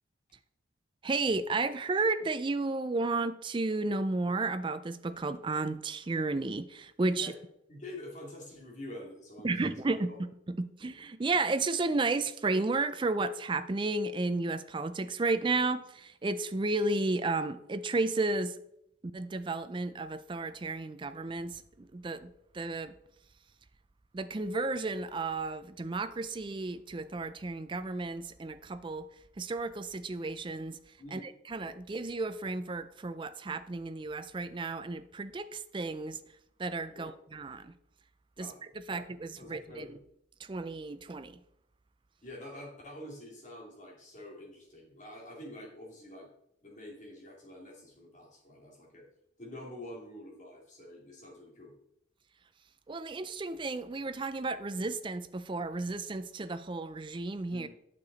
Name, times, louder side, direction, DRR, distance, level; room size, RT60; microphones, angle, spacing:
voice 1, 1.0-7.3 9.4-18.6 19.1-22.9 24.1-36.2 36.6-37.8 38.4-40.0 40.4-41.4 52.9-57.7, right 3 dB, 25° right, 0.4 m, -33 dB
voice 2, 7.7-9.7 10.1-10.2 31.0-31.3 36.9-37.1 38.4-38.6 38.9-39.0 39.4-39.9 42.2-46.3 46.6-49.0 49.4-51.7 57.5-57.7, left 1 dB, 40° left, 2.6 m, -47 dB
8.5 x 6.7 x 4.0 m
head